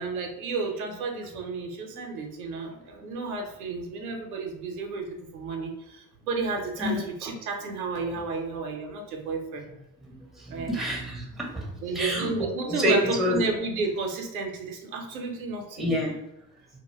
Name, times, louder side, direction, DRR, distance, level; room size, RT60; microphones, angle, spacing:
voice 1, 0.0-9.6 10.5-10.7 11.8-15.9, right 3 dB, 80° right, 2 dB, 0.6 m, -32 dB
voice 2, 10.1-11.7 11.9-13.4 15.8-16.1, equal, ahead, -1 dB, 0.5 m, -28 dB
2.2 x 2.1 x 3.1 m, 0.84 s
figure-of-eight pair, 60°, 43 cm